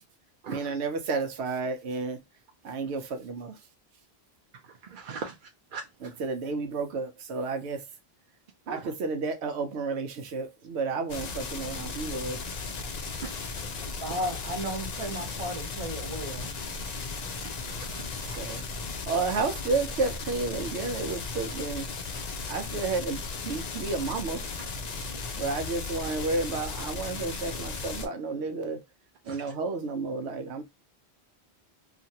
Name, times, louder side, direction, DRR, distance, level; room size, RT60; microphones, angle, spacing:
voice 1, 0.5-2.2 2.6-3.6 6.0-7.8 8.7-12.4 18.4-18.6 19.0-21.9 22.5-24.4 25.4-28.8 29.3-30.6, right 4 dB, 85° right, 0.9 m, -31 dB
voice 2, 4.6-6.1 8.7-8.9 13.2-13.8 17.2-18.6 24.6-25.4 29.2-29.5, right 5 dB, 55° right, 0.7 m, -43 dB
sound 1, 11.1-28.1, left 4 dB, 50° left, 0.6 m, -36 dB
voice 3, 14.0-16.5, right 1 dB, 30° right, 0.9 m, -34 dB
2.9 x 2.5 x 2.7 m
omnidirectional pair, 1.1 m